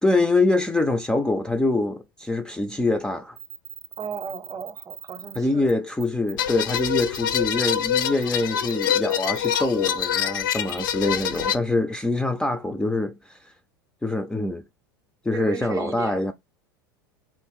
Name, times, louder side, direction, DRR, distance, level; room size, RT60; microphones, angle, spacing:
voice 1, 0.0-3.4 5.4-13.5 14.0-14.6 15.2-16.3, left 2 dB, 5° left, 0.4 m, -24 dB
sound 1, 3.4-5.4 5.7-5.8 6.0-6.3 6.7-7.4 8.0-8.2 8.7-9.5 10.0-10.1 10.7-10.8 11.2-11.4, right 12 dB, 75° right, 0.5 m, -40 dB
voice 2, 4.0-5.7 15.3-16.3, right 7 dB, 25° right, 0.7 m, -35 dB
sound 2, 6.4-11.6, left 9 dB, 65° left, 0.5 m, -25 dB
3.4 x 2.4 x 3.6 m
hypercardioid pair, 85°, 12 cm